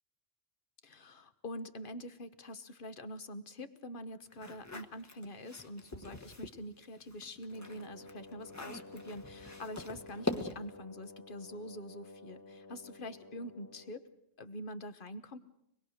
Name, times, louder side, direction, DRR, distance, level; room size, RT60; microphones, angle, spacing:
voice 1, 0.8-14.1 14.4-15.4, left 1 dB, 50° left, 11 dB, 1.2 m, -45 dB
sound 1, 4.3-6.6 7.0-10.8, left 1 dB, 15° left, 1.1 m, -42 dB
Wind instrument woodwind instrument, 7.5-14.1, left 2 dB, 80° left, 2.0 m, -53 dB
25.0 x 20.5 x 6.5 m, 0.79 s
omnidirectional pair, 1.2 m